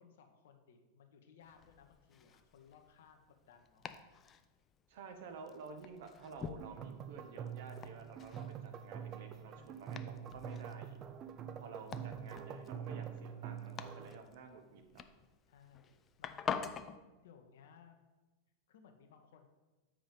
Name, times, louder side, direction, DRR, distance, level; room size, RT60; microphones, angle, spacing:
voice 1, 0.0-3.9 8.6-9.1 12.3-12.9 15.5-16.6 17.2-18.0 18.7-19.5, left 7 dB, 55° left, 5 dB, 0.9 m, -62 dB
Domestic sounds home sounds, 1.4-17.0, left 7 dB, 25° left, 0.4 m, -48 dB
voice 2, 4.9-11.0 11.6-15.0, right 5 dB, 55° right, 6 dB, 0.9 m, -51 dB
sound 1, 6.6-14.2, right 8 dB, 30° right, 0.5 m, -46 dB
7.6 x 5.0 x 5.1 m, 1.2 s
figure-of-eight pair, 90°, 0 cm